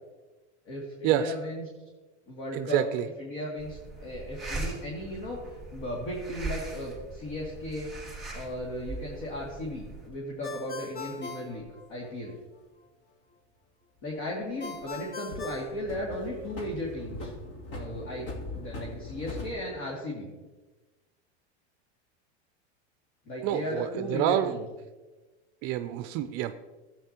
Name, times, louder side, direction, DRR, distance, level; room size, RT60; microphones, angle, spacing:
voice 1, 0.7-1.7 2.3-7.9 8.3-11.6 11.9-12.3 14.0-17.3 17.7-20.3 23.3-24.6, left 1 dB, 55° left, -3 dB, 2.5 m, -36 dB
voice 2, 2.5-3.1 23.4-24.5 25.6-26.5, right 12 dB, 45° right, 11 dB, 0.5 m, -27 dB
sound 1, 3.6-10.1, right 2 dB, ahead, 2.9 m, -40 dB
Ringtone, 10.4-12.4 14.6-16.6, left 4 dB, 25° left, 0.9 m, -41 dB
sound 2, 10.5-11.7 14.0-14.9 15.3-19.5, left 1 dB, 80° left, 2.7 m, -41 dB
13.0 x 8.7 x 2.9 m, 1.2 s
supercardioid pair, 135°, 34 cm